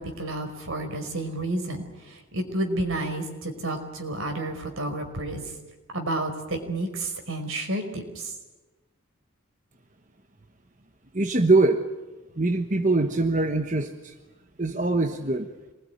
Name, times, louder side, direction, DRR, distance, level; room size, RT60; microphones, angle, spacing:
voice 1, 0.0-5.4 5.9-8.3, right 1 dB, 80° right, 5 dB, 5.0 m, -30 dB
voice 2, 11.1-11.9 12.4-14.1 14.6-15.5, right 2 dB, 35° right, 6 dB, 1.2 m, -23 dB
26.5 x 21.0 x 9.8 m, 1.1 s
head